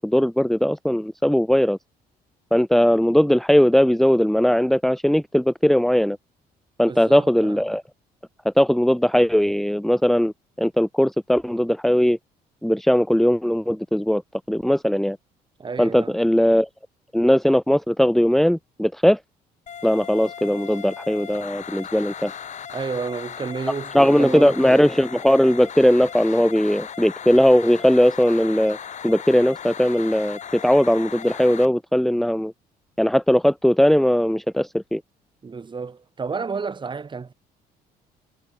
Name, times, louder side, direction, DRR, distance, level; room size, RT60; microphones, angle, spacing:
voice 1, 0.0-1.8 2.5-6.2 6.8-7.8 8.5-12.2 12.6-14.2 14.5-15.2 15.8-16.7 17.1-19.2 19.8-22.3 23.9-28.8 29.0-32.5 33.0-35.0, equal, ahead, 1.8 m, -19 dB
voice 2, 6.8-7.7 15.6-16.2 22.7-24.9 35.4-37.3, right 5 dB, 30° right, 5.4 m, -31 dB
sound 1, 19.7-31.7, left 8 dB, 45° left, 6.3 m, -37 dB
cardioid pair, 110°, 17 cm